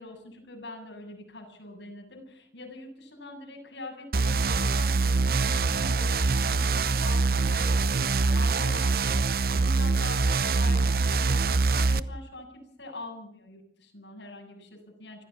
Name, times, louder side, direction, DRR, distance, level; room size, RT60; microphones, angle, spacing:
voice 1, 0.0-9.2 9.5-15.2, left 2 dB, 90° left, 1 dB, 7.5 m, -43 dB
sound 1, 4.1-12.0, right 3 dB, 55° right, 0.8 m, -24 dB
25.5 x 15.0 x 7.3 m, 0.69 s
head